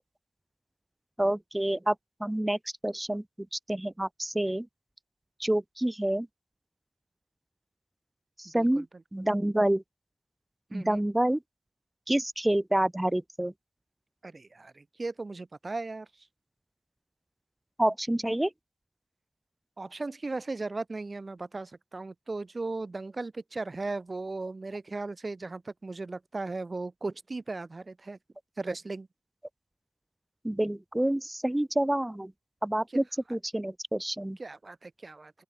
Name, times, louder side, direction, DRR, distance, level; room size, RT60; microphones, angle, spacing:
voice 1, 1.2-2.0 2.2-3.2 3.5-4.7 5.4-6.3 8.4-8.9 9.1-9.8 10.7-11.4 12.1-13.5 17.8-18.5 30.4-32.3 32.6-33.0 33.3-34.4, right 1 dB, 10° right, 2.1 m, -28 dB
voice 2, 8.5-8.8 9.2-9.3 10.7-11.0 14.2-16.1 19.8-28.2 28.6-29.1 34.4-35.3, right 3 dB, 35° right, 1.6 m, -37 dB
open air
wide cardioid pair, 90°, 0 cm